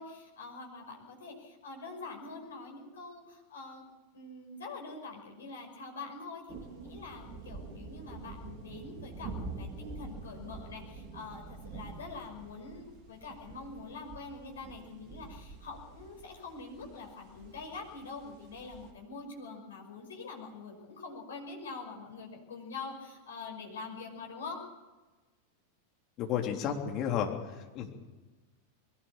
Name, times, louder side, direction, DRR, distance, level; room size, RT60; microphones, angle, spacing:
voice 1, 0.0-3.9 4.1-24.6, left 4 dB, 65° left, 1 dB, 5.7 m, -45 dB
sound 1, 6.5-18.9, right 3 dB, 35° right, 3.0 m, -47 dB
voice 2, 26.2-28.0, left 8 dB, 35° left, 2 dB, 3.4 m, -32 dB
21.5 x 18.5 x 7.2 m, 1.2 s
figure-of-eight pair, 90°, 0 cm